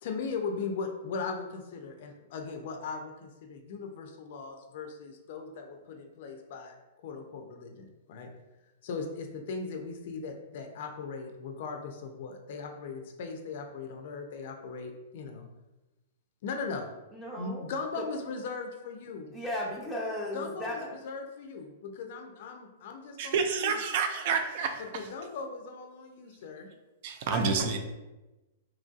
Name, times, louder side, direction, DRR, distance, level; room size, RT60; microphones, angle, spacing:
voice 1, 0.0-6.8 7.0-8.3 8.8-15.5 16.4-16.9 17.4-19.2 20.3-23.8 24.8-26.7, left 4 dB, 60° left, 0.4 m, -38 dB
voice 2, 17.1-17.6 18.0-18.1 19.3-20.9 27.3-27.8, left 1 dB, ahead, 0.6 m, -35 dB
voice 3, 23.2-24.8 27.0-27.8, right 5 dB, 55° right, 0.4 m, -28 dB
2.9 x 2.6 x 2.4 m
hypercardioid pair, 135°, 0 cm